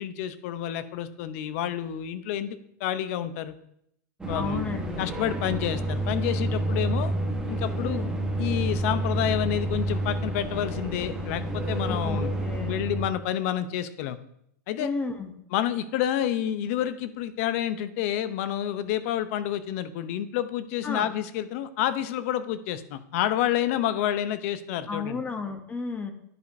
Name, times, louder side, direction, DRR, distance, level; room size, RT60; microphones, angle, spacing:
voice 1, 0.0-3.5 4.3-4.7 5.0-7.1 7.5-8.0 8.4-12.3 12.6-14.2 14.7-14.9 15.5-25.2, left 11 dB, 60° left, 13 dB, 0.6 m, -29 dB
sound 1, 4.2-13.1, right 1 dB, 10° right, 1.2 m, -29 dB
voice 2, 4.3-5.1 7.8-8.1 11.9-12.8 14.8-15.3 20.8-21.1 24.9-26.1, left 4 dB, 15° left, 7 dB, 0.8 m, -33 dB
11.0 x 5.1 x 2.7 m, 0.73 s
hypercardioid pair, 120°, 9 cm